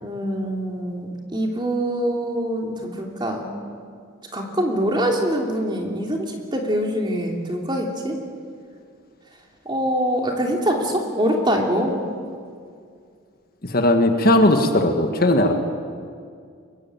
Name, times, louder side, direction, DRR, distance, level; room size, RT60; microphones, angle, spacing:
voice 1, 0.0-3.5 4.3-8.2 9.6-12.0, equal, 20° right, 1 dB, 3.0 m, -24 dB
voice 2, 13.6-15.5, left 1 dB, 45° left, 5 dB, 1.7 m, -17 dB
23.0 x 22.5 x 8.9 m, 2.2 s
head